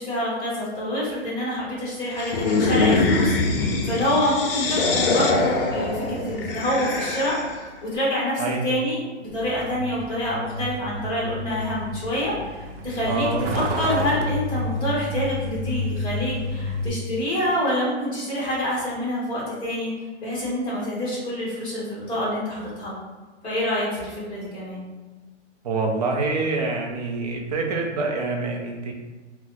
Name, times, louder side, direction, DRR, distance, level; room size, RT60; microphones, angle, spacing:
voice 1, 0.0-7.3 7.8-13.3 13.5-19.9 20.2-22.9 23.4-24.8, left 1 dB, 15° left, -7 dB, 1.0 m, -27 dB
sound 1, 2.2-7.7, left 3 dB, 50° left, 0.5 m, -23 dB
voice 2, 8.4-8.7 13.0-13.4 25.6-28.9, right 3 dB, 35° right, 1 dB, 0.4 m, -26 dB
Truck, 9.3-16.9, left 1 dB, 85° right, 0.7 m, -30 dB
3.7 x 2.1 x 2.8 m, 1.3 s
hypercardioid pair, 155°, 35 cm